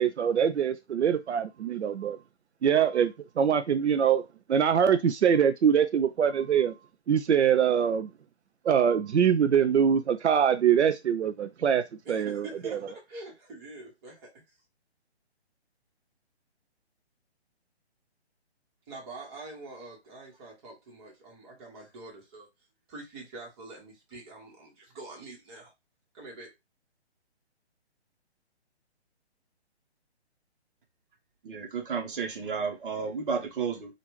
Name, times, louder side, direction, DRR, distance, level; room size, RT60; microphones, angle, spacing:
voice 1, 0.0-2.2 2.6-4.2 4.5-6.7 7.1-8.1 8.6-12.8, right 8 dB, 80° right, 0.5 m, -24 dB
voice 2, 12.0-14.3 18.9-22.5 22.9-25.7 26.1-26.5, right 2 dB, 25° right, 1.2 m, -45 dB
voice 3, 31.4-33.9, right 5 dB, 50° right, 1.0 m, -32 dB
3.1 x 2.4 x 3.1 m
figure-of-eight pair, 140°, 34 cm